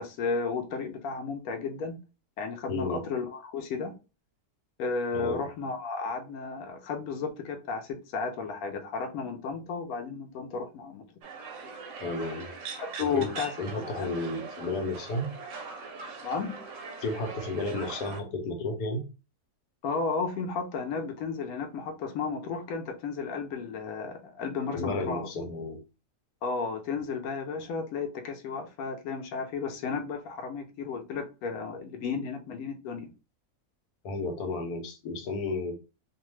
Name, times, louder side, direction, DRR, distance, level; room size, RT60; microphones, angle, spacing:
voice 1, 0.0-2.0 2.4-3.9 4.8-11.1 12.8-13.5 13.9-14.1 16.2-16.6 19.8-25.3 26.4-33.1, left 4 dB, 70° left, 1.0 m, -33 dB
voice 2, 2.7-3.0 5.1-5.5 12.0-12.5 13.0-13.3 13.6-15.3 17.0-19.0 24.7-25.8 34.0-35.7, left 2 dB, 90° left, 1.2 m, -32 dB
sound 1, 11.2-18.2, right 4 dB, 70° right, 0.8 m, -41 dB
2.7 x 2.2 x 3.1 m
omnidirectional pair, 1.7 m